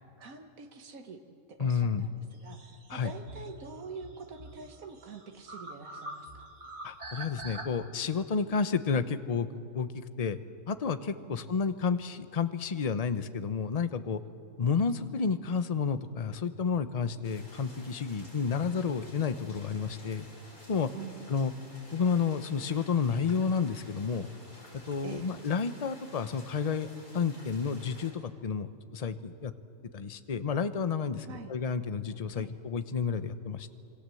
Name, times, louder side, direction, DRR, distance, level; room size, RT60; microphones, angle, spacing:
voice 1, 0.2-1.2 1.5-6.5 11.3-11.5 20.9-21.2 25.0-25.3 31.2-31.5 32.3-32.5, right 5 dB, 75° right, 4 dB, 1.9 m, -45 dB
voice 2, 1.6-2.1 2.9-3.1 6.8-9.5 9.7-10.4 10.7-14.2 14.6-20.3 20.7-20.9 21.3-21.5 21.9-24.3 24.9-29.5 29.9-33.7, left 5 dB, 35° left, 11 dB, 0.8 m, -31 dB
sound 1, 2.3-7.6, right 2 dB, 50° right, 2.4 m, -45 dB
sound 2, 17.2-28.1, left 1 dB, 80° left, 5.5 m, -53 dB
27.0 x 23.5 x 7.7 m, 2.7 s
omnidirectional pair, 1.5 m